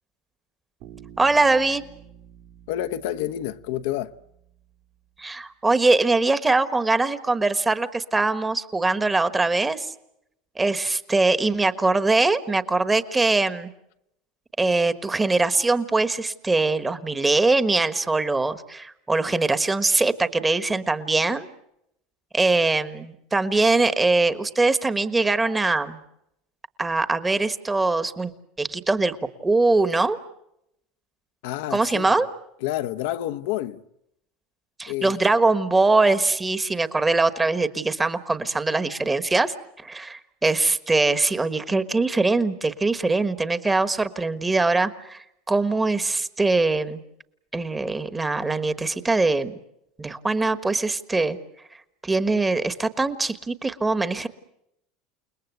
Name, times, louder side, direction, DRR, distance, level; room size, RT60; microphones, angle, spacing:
Bass guitar, 0.8-4.8, right 9 dB, 55° right, 2.3 m, -49 dB
voice 1, 1.2-1.8 5.2-9.9 10.6-13.7 14.6-21.5 22.3-26.0 26.8-28.3 28.6-30.2 31.7-32.3 34.8-47.0 47.5-49.5 50.0-51.4 52.0-54.3, right 3 dB, 10° right, 1.3 m, -22 dB
voice 2, 2.7-4.1 31.4-32.2 32.6-33.8 34.9-35.2, left 13 dB, 75° left, 1.0 m, -29 dB
29.5 x 20.0 x 8.3 m
supercardioid pair, 150°, 0 cm